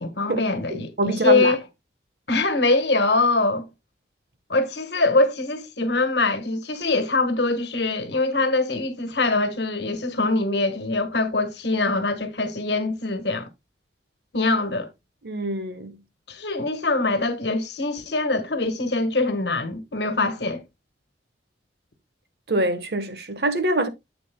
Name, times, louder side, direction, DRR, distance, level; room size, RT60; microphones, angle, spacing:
voice 1, 0.0-1.6 2.3-3.6 4.5-13.5 14.3-14.9 16.3-20.6, left 3 dB, 70° left, 1.4 m, -23 dB
voice 2, 0.7-1.5 15.2-15.9 22.5-23.9, right 1 dB, 60° right, 1.2 m, -24 dB
9.5 x 7.7 x 2.2 m
head